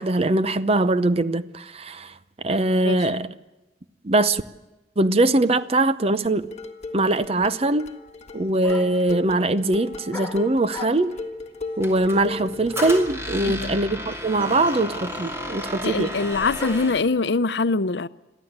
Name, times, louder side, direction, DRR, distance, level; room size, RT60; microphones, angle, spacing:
voice 1, 0.0-2.1 2.4-3.3 4.0-4.4 5.0-6.5 6.9-7.9 8.3-11.1 11.8-16.1, right 2 dB, 35° right, 0.7 m, -22 dB
sound 1, 6.2-13.2, left 3 dB, 40° left, 1.6 m, -37 dB
sound 2, 8.1-8.2 8.6-9.1 10.1-11.3 12.8-13.2 14.1-14.2 14.4-17.0, left 4 dB, 10° left, 2.4 m, -37 dB
Squeak, 11.8-17.1, equal, 15° right, 2.6 m, -33 dB
voice 2, 13.4-13.8 14.6-14.7 15.8-18.1, left 3 dB, 75° left, 0.7 m, -24 dB
22.5 x 14.5 x 8.0 m
head